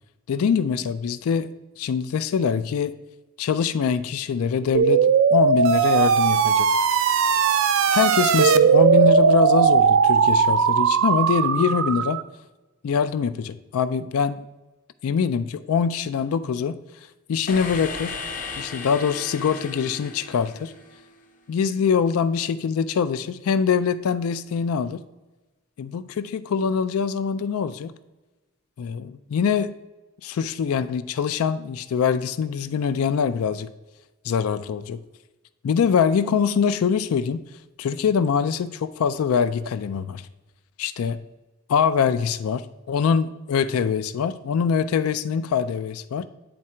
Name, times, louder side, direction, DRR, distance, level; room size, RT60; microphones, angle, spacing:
voice 1, 0.3-1.5 1.8-2.9 3.4-6.7 7.9-12.2 12.8-14.5 15.0-16.8 17.3-18.2 18.6-20.7 21.5-25.0 25.8-28.0 28.8-29.7 30.2-33.7 34.2-35.0 35.6-37.4 37.8-40.2 40.8-41.2 41.7-46.3, left 6 dB, 90° left, 12 dB, 0.3 m, -24 dB
sound 1, 4.7-12.2, right 6 dB, 70° right, 0.4 m, -18 dB
sound 2, 17.5-21.3, left 4 dB, 35° left, 0.6 m, -36 dB
8.7 x 3.7 x 4.3 m, 1.1 s
head